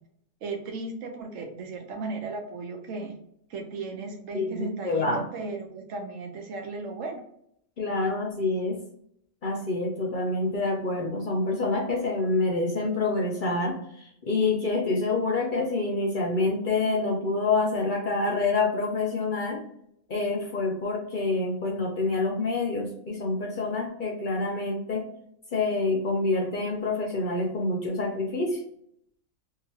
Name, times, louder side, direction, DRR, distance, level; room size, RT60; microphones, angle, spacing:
voice 1, 0.4-3.2 3.5-7.2, right 3 dB, 75° right, 4 dB, 1.0 m, -36 dB
voice 2, 4.3-5.3 7.8-8.8 9.4-19.7 20.1-25.1 25.5-28.6, left 3 dB, 50° left, 0 dB, 0.7 m, -27 dB
2.9 x 2.5 x 2.7 m, 0.72 s
omnidirectional pair, 1.3 m